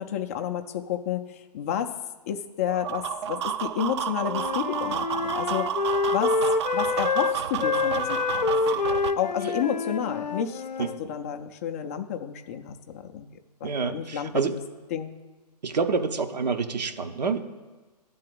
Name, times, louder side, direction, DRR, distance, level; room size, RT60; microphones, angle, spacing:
voice 1, 0.0-1.9 2.3-5.7 6.1-6.4 6.7-8.5 9.2-13.3 13.6-14.6 14.9-15.1, left 9 dB, 20° left, 6 dB, 0.3 m, -31 dB
sound 1, 2.7-9.1, right 9 dB, 40° right, 0.4 m, -31 dB
Wind instrument woodwind instrument, 4.2-11.0, left 4 dB, 85° left, 0.5 m, -27 dB
voice 2, 13.6-14.5 15.6-17.4, right 5 dB, 75° right, 7 dB, 0.9 m, -27 dB
11.0 x 3.9 x 7.6 m, 1.3 s
hypercardioid pair, 135°, 21 cm